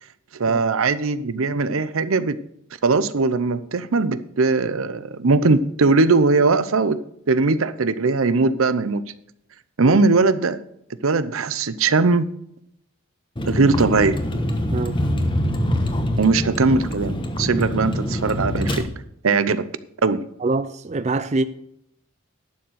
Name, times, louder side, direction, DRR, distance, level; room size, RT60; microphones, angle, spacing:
voice 1, 0.3-2.4 2.8-9.0 9.8-10.6 11.0-12.3 13.5-14.2 16.2-18.9 19.2-19.7 20.0-20.3, right 3 dB, 80° right, 0.7 m, -20 dB
Vehicle, 13.4-18.8, equal, 25° left, 1.1 m, -24 dB
voice 2, 20.4-21.4, right 3 dB, 35° right, 0.4 m, -24 dB
11.5 x 7.0 x 6.4 m
head